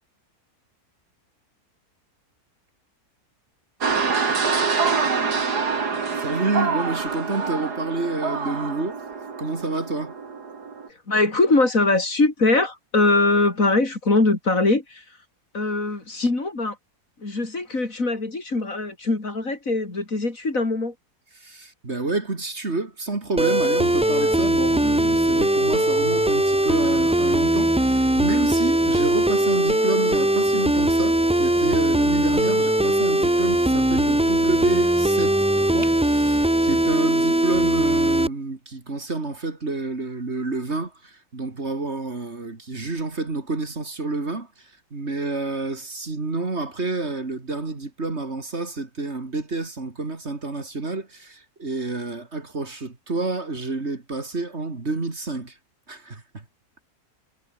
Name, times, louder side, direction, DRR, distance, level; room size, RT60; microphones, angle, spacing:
sound 1, 3.8-10.9, right 5 dB, 90° right, 3.0 m, -26 dB
voice 1, 6.2-9.0 9.4-10.2 21.4-55.6 55.9-56.4, right 3 dB, 45° right, 3.1 m, -29 dB
voice 2, 11.1-15.0 15.5-16.8 17.2-20.9, left 2 dB, 55° left, 4.6 m, -22 dB
sound 2, 23.4-38.3, right 1 dB, 5° right, 0.4 m, -20 dB
omnidirectional pair, 1.7 m